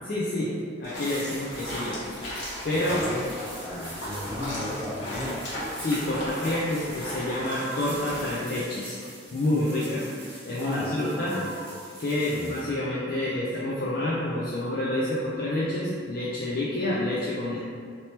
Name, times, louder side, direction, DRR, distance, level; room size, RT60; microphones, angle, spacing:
voice 1, 0.0-2.0 2.6-3.0 5.8-9.0 9.3-10.0 10.4-11.3 12.0-17.6, left 1 dB, 50° left, -7 dB, 0.4 m, -28 dB
sound 1, 0.8-8.3, left 1 dB, 80° left, 1.0 m, -36 dB
sound 2, 0.9-12.6, right 1 dB, 90° right, 1.2 m, -45 dB
voice 2, 2.7-5.4 10.6-11.1 11.3-11.5 12.3-12.5, left 1 dB, 15° right, -11 dB, 0.7 m, -34 dB
Purr / Meow, 3.4-4.0 4.3-4.9 5.6-5.7 5.9-6.6 7.1-8.0 8.2-9.0 9.4-10.0 10.4-10.5 11.0-11.7, right 1 dB, 50° right, 1.0 m, -42 dB
3.2 x 2.8 x 2.8 m, 2.1 s
head